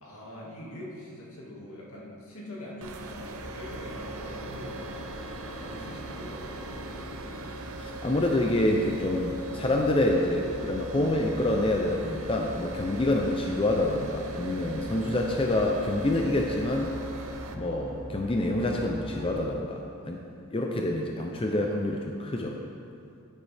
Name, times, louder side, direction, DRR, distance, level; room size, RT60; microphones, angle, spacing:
voice 1, 0.0-7.6, left 1 dB, 75° left, -4 dB, 2.2 m, -44 dB
sound 1, 2.8-17.5, right 1 dB, 70° right, 0.8 m, -40 dB
sound 2, 3.2-19.5, equal, 30° right, 2.6 m, -43 dB
voice 2, 7.8-17.0 17.5-20.2 20.5-22.6, left 1 dB, 25° left, 1 dB, 0.5 m, -27 dB
11.0 x 9.9 x 3.5 m, 2.6 s
head